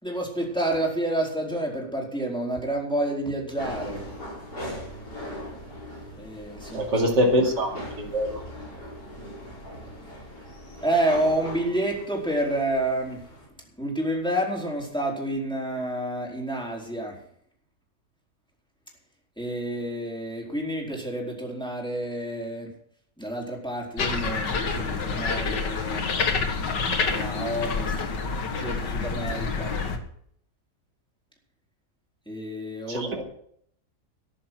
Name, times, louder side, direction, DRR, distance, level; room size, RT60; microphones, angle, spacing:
voice 1, 0.0-4.0 6.2-7.1 10.8-13.2 13.8-17.2 19.4-22.7 23.2-26.0 27.0-27.9 28.5-29.7 32.3-33.2, right 1 dB, 5° left, -2 dB, 4.3 m, -29 dB
sound 1, 3.6-13.5, equal, 70° left, 6.3 m, -40 dB
voice 2, 6.7-8.4 32.9-33.2, equal, 85° right, 1 dB, 3.2 m, -24 dB
sound 2, 24.0-30.0, left 4 dB, 90° left, 2.3 m, -27 dB
14.5 x 11.0 x 6.3 m, 0.66 s
omnidirectional pair, 1.8 m